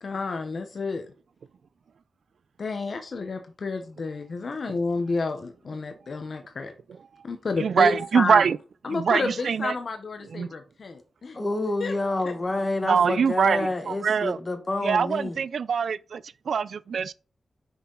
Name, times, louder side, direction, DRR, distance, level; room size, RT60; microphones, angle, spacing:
voice 1, 0.0-1.1 2.6-6.7 7.2-8.4 8.8-11.4 11.8-11.9 12.2-12.3, left 3 dB, 60° left, 0.8 m, -30 dB
voice 2, 7.6-8.6 8.9-9.7 10.3-10.5 12.8-14.4 14.8-17.1, right 6 dB, 90° right, 0.3 m, -23 dB
voice 3, 11.3-15.4, left 2 dB, 25° left, 1.4 m, -28 dB
6.0 x 5.6 x 3.8 m
wide cardioid pair, 130°, 0 cm